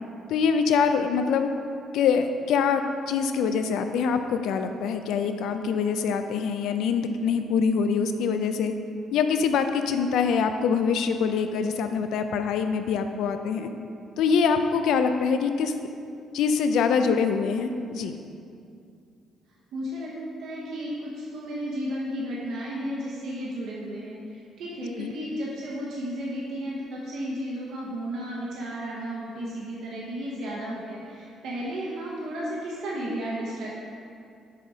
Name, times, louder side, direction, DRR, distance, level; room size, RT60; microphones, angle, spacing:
voice 1, 0.3-1.5 1.9-8.7 9.1-13.7 14.2-15.7 16.3-18.2 25.0-25.1, left 6 dB, 75° left, 8 dB, 0.4 m, -24 dB
voice 2, 19.7-20.1 20.4-33.8, equal, 65° right, -5 dB, 0.9 m, -33 dB
6.5 x 4.1 x 4.8 m, 2.5 s
cardioid pair, 150°, 0 cm